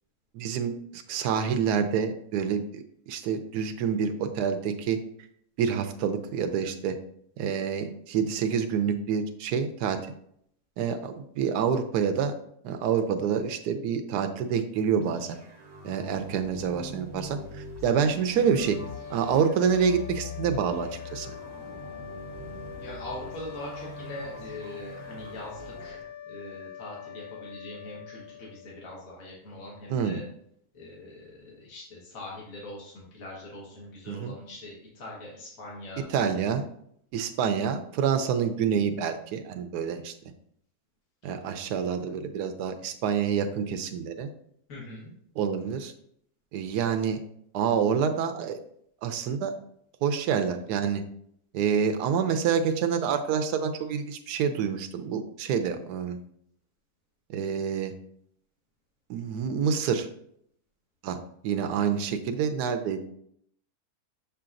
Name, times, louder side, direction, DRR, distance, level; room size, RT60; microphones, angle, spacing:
voice 1, 0.3-5.0 5.6-7.0 7.4-10.0 10.8-12.3 12.6-15.4 15.8-18.8 19.1-21.3 29.9-30.2 34.1-34.3 36.1-36.6 37.1-40.1 41.2-44.3 45.4-45.9 46.5-47.2 47.5-48.6 49.0-49.5 50.0-51.0 51.5-56.2 57.3-57.9 59.1-60.1 61.0-61.2 61.4-63.0, right 7 dB, 85° right, 7 dB, 1.2 m, -27 dB
sound 1, 15.0-26.0, left 1 dB, 20° right, 0.7 m, -43 dB
sound 2, 18.5-29.1, left 9 dB, 80° left, 1.1 m, -44 dB
voice 2, 22.8-30.2 30.7-36.1 44.7-45.1, left 1 dB, 60° left, -4 dB, 1.8 m, -42 dB
6.8 x 5.7 x 2.5 m, 0.69 s
omnidirectional pair, 1.7 m